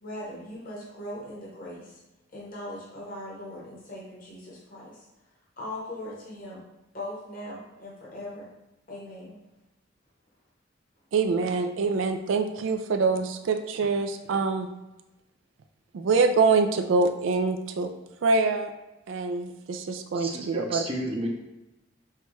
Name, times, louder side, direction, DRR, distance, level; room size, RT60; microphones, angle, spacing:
voice 1, 0.0-2.0 2.3-5.0 5.6-6.6 6.9-8.5 8.9-9.3, left 1 dB, 45° left, -6 dB, 1.0 m, -39 dB
voice 2, 11.1-14.7 15.9-17.9 18.2-18.7 19.1-20.8, right 4 dB, 75° right, 7 dB, 0.4 m, -25 dB
voice 3, 20.1-21.3, right 1 dB, 30° right, 0 dB, 0.6 m, -32 dB
5.7 x 2.2 x 3.0 m, 0.98 s
head